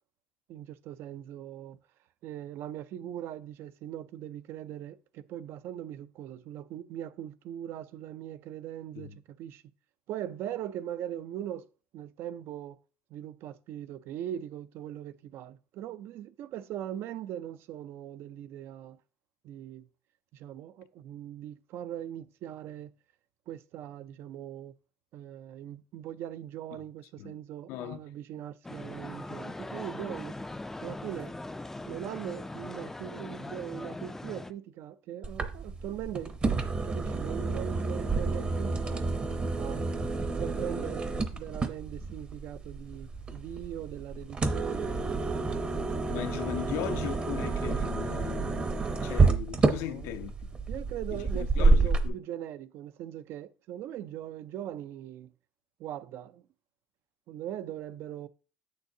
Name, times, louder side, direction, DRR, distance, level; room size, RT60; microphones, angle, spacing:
voice 1, 0.5-1.8 2.2-9.7 10.1-11.7 11.9-12.8 13.1-19.0 19.4-19.9 20.3-22.9 23.5-24.7 25.1-30.4 30.8-31.4 31.9-36.4 36.8-39.1 39.5-39.9 40.4-45.5 49.7-50.1 50.7-55.3 55.8-56.5 57.3-58.3, right 11 dB, 65° right, 0.4 m, -40 dB
voice 2, 27.7-28.0 46.1-50.3 51.1-52.1, left 13 dB, 85° left, 0.5 m, -38 dB
sound 1, 28.6-34.5, left 2 dB, 10° left, 0.3 m, -40 dB
sound 2, 35.2-52.1, right 3 dB, 25° right, 0.7 m, -29 dB
7.8 x 6.6 x 2.7 m
cardioid pair, 130°, 4 cm